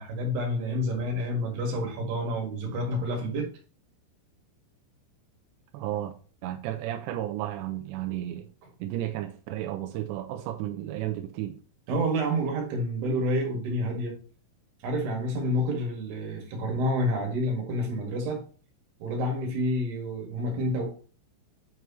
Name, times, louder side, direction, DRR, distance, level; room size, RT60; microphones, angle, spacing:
voice 1, 0.0-3.5 11.9-14.1 14.8-18.4 19.0-20.9, equal, 60° right, 3.6 m, -28 dB
voice 2, 5.7-6.1 6.4-8.5 8.8-11.6, right 13 dB, 85° right, 2.5 m, -33 dB
9.1 x 4.7 x 3.1 m
omnidirectional pair, 5.8 m